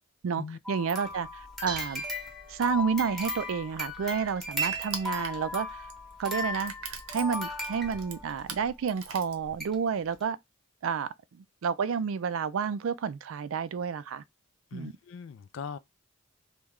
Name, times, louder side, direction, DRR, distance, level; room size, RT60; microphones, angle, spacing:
voice 1, 0.2-2.0 2.5-5.9 6.2-6.7 7.1-10.4 10.8-14.2 14.7-14.9, right 6 dB, 70° right, 0.3 m, -30 dB
sound 1, 0.6-8.4 9.1-9.2 9.6-9.7 10.1-10.2, left 1 dB, ahead, 0.9 m, -36 dB
Dishes pots and pans, 1.2-8.6, right 3 dB, 20° right, 1.1 m, -49 dB
Crushing, 3.7-9.9, right 6 dB, 90° right, 0.7 m, -43 dB
voice 2, 14.7-15.8, left 6 dB, 60° left, 0.3 m, -40 dB
3.1 x 2.2 x 3.6 m
head